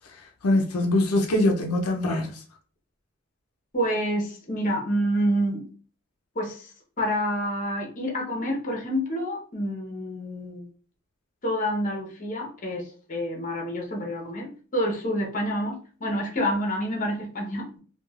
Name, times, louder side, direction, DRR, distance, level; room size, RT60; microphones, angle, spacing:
voice 1, 0.1-2.4, left 1 dB, 85° left, 0.5 m, -23 dB
voice 2, 3.7-5.7 6.3-6.7 7.0-10.7 11.4-17.8, equal, 35° left, 0.8 m, -28 dB
3.0 x 2.3 x 2.3 m
head